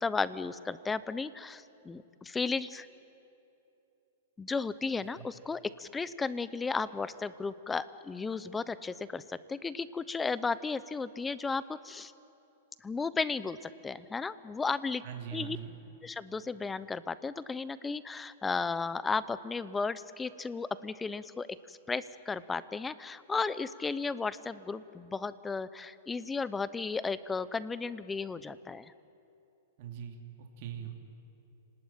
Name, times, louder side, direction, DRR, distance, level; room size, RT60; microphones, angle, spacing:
voice 1, 0.0-2.9 4.4-12.1 12.8-15.0 15.3-15.6 16.0-28.9, left 4 dB, 10° left, 16 dB, 0.7 m, -34 dB
voice 2, 15.0-15.7 29.8-31.0, right 9 dB, 50° right, 2 dB, 3.1 m, -42 dB
29.5 x 19.5 x 9.0 m, 2.9 s
hypercardioid pair, 145°, 0 cm